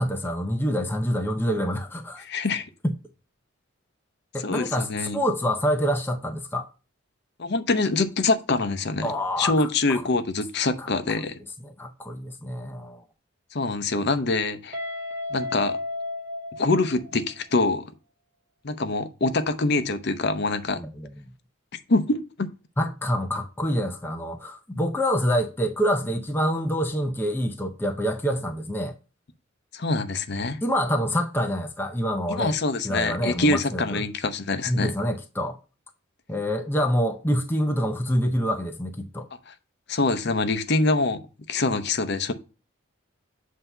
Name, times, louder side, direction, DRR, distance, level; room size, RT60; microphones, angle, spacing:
voice 1, 0.0-2.2 4.3-6.7 9.0-10.0 10.8-10.9 11.6-13.0 20.8-21.1 22.8-28.9 30.6-32.6 32.8-34.0 34.7-35.6 36.3-39.3, equal, 10° left, 0.5 m, -26 dB
voice 2, 2.2-2.7 4.4-5.2 7.4-9.1 9.4-11.4 13.5-14.8 15.3-15.8 16.5-17.9 18.6-20.8 21.9-22.5 29.7-30.6 32.3-34.9 39.5-39.6 39.9-41.2 41.5-42.3, left 3 dB, 55° left, 0.7 m, -25 dB
Guitar, 14.7-17.6, left 2 dB, 40° right, 1.5 m, -34 dB
7.8 x 2.8 x 5.4 m
head